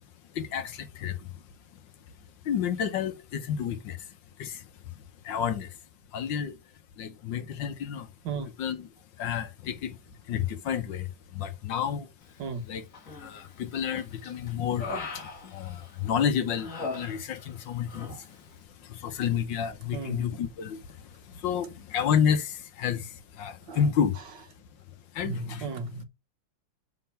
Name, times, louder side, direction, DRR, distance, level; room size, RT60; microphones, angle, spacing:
voice 1, 0.3-1.4 1.7-1.8 2.4-5.8 6.1-6.6 7.0-8.1 8.6-8.9 9.2-10.0 10.3-12.1 12.7-12.8 13.2-24.2 25.1-25.6, left 8 dB, 70° left, 1.5 m, -31 dB
Human voice, 12.9-13.5 14.0-16.1 16.5-17.6 17.9-18.2, left 3 dB, 45° left, 1.7 m, -39 dB
voice 2, 17.8-18.2 19.9-20.2 23.7-23.8 25.2-26.0, right 4 dB, 65° right, 1.8 m, -35 dB
6.0 x 4.4 x 5.6 m
omnidirectional pair, 2.1 m